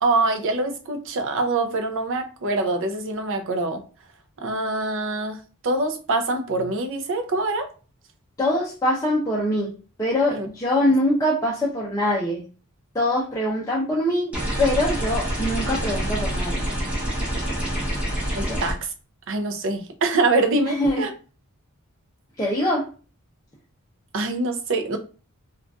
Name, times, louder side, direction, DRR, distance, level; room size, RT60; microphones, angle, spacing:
voice 1, 0.0-3.8 4.4-5.4 5.6-7.7 10.4-10.5 18.3-18.9 19.3-21.1 24.1-25.0, right 2 dB, 60° right, 5 dB, 0.5 m, -24 dB
voice 2, 8.4-9.7 10.0-12.4 12.9-16.6 18.5-18.6 20.6-21.1 22.4-22.9, left 1 dB, 15° left, -5 dB, 0.6 m, -23 dB
sound 1, 14.3-18.7, equal, 5° right, 0.9 m, -26 dB
3.7 x 2.4 x 2.4 m, 0.36 s
head